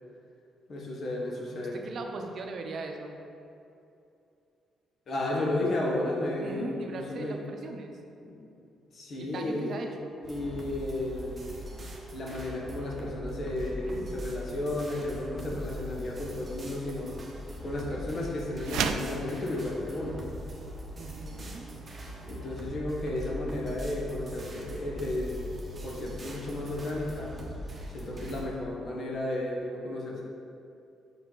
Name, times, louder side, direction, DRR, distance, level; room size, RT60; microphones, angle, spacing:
voice 1, 0.7-1.8 5.1-7.4 8.2-8.4 8.9-9.8 10.2-11.5 12.1-17.1 17.6-20.3 22.2-25.5 25.8-27.3 27.9-30.2, left 1 dB, 50° left, -2 dB, 1.3 m, -33 dB
voice 2, 1.7-3.1 6.4-7.9 9.2-10.2 13.9-14.1 21.0-21.7, right 3 dB, 55° right, 4 dB, 0.7 m, -39 dB
sound 1, 10.2-28.5, equal, 30° right, 1.0 m, -41 dB
sound 2, 18.6-19.2, right 7 dB, 80° right, 0.3 m, -29 dB
5.7 x 4.8 x 3.9 m, 2.6 s
cardioid pair, 90°, 0 cm